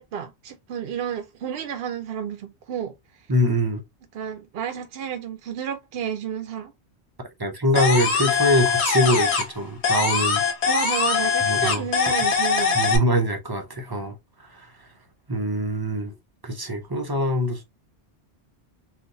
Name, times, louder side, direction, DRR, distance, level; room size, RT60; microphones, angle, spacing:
voice 1, 0.0-2.9 4.1-6.7 10.6-12.8, right 8 dB, 65° right, 0.7 m, -31 dB
voice 2, 3.3-3.8 7.4-10.4 11.5-11.9 12.6-14.1 15.3-16.1 16.4-17.6, equal, 30° right, 0.4 m, -23 dB
sound 1, 7.8-9.6 9.8-13.0, left 5 dB, 70° left, 1.2 m, -22 dB
3.8 x 2.5 x 2.6 m
omnidirectional pair, 1.2 m